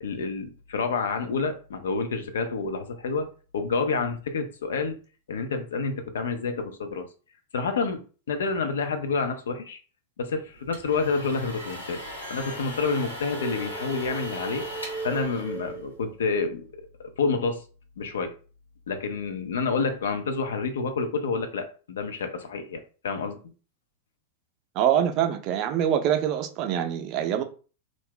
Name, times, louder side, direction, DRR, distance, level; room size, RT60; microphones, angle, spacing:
voice 1, 0.0-5.0 5.3-7.1 7.5-9.8 10.2-12.0 12.3-14.6 15.0-16.7 17.2-17.6 18.0-18.3 18.9-23.4, left 4 dB, 65° left, 0.4 m, -28 dB
sound 1, 10.5-16.2, left 1 dB, 85° left, 0.9 m, -39 dB
sound 2, 13.3-16.5, right 3 dB, ahead, 0.8 m, -38 dB
voice 2, 24.8-27.4, right 10 dB, 40° right, 0.4 m, -24 dB
2.4 x 2.0 x 3.7 m
figure-of-eight pair, 90°, 0 cm